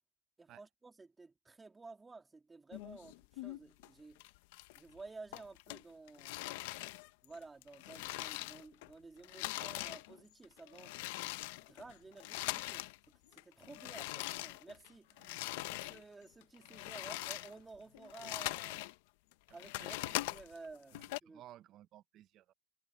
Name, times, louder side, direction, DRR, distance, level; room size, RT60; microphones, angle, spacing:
voice 1, 0.4-4.3 4.7-6.7 7.2-11.0 11.6-15.1 15.6-18.9 19.5-21.4, right 3 dB, 15° right, 3.2 m, -53 dB
sound 1, 2.7-3.9 4.2-5.0 5.3-8.9 9.2-13.0 13.3-16.0 16.4-18.9 19.3-21.2, left 20 dB, 80° left, 0.8 m, -42 dB
voice 2, 19.5-20.0 20.9-22.5, right 13 dB, 50° right, 0.6 m, -58 dB
supercardioid pair, 115°, 0 cm